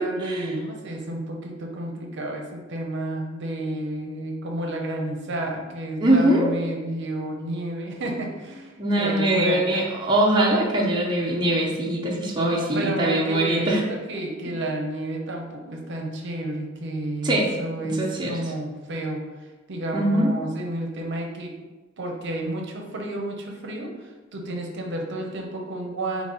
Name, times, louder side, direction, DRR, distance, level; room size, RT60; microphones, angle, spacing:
voice 1, 0.0-9.8 12.3-19.2 19.7-21.5 22.0-26.3, right 1 dB, 60° right, 1 dB, 0.7 m, -31 dB
voice 2, 6.0-6.5 8.8-13.8 17.2-17.5 18.0-18.4 19.9-20.3, right 1 dB, 20° right, -3 dB, 0.6 m, -22 dB
3.9 x 3.0 x 3.8 m, 1.2 s
head